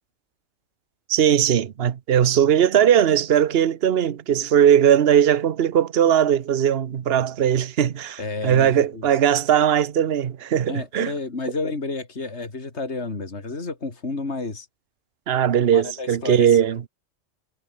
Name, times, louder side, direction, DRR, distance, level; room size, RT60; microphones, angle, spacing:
voice 1, 1.1-11.1 15.3-16.8, right 9 dB, 55° right, 1.1 m, -19 dB
voice 2, 8.2-9.1 10.7-14.7 15.7-16.6, left 3 dB, 65° left, 3.3 m, -31 dB
omnidirectional pair, 1.2 m